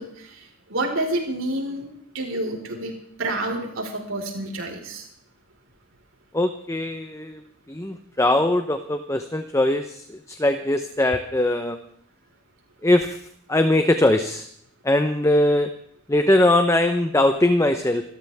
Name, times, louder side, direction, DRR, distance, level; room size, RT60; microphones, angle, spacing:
voice 1, 0.0-1.9 2.1-5.1, right 1 dB, 90° right, 2 dB, 4.9 m, -29 dB
voice 2, 6.3-7.4 7.7-11.8 12.8-13.2 13.5-14.5 14.8-15.7 16.1-18.0, left 1 dB, 15° left, 7 dB, 0.9 m, -21 dB
28.0 x 13.5 x 3.6 m, 0.68 s
head